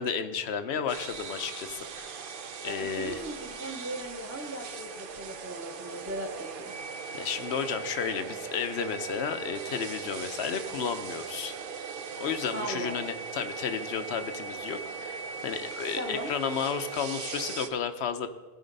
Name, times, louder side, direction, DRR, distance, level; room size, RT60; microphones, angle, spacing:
voice 1, 0.0-2.2 2.6-3.2 7.1-11.9 12.2-18.3, left 6 dB, 80° left, 10 dB, 1.0 m, -33 dB
sound 1, 0.9-17.7, right 5 dB, 60° right, 0.8 m, -39 dB
voice 2, 2.7-6.7 12.5-13.1 16.0-16.3, right 1 dB, 15° right, -2 dB, 0.9 m, -38 dB
15.0 x 5.1 x 5.3 m, 1.3 s
omnidirectional pair, 1.1 m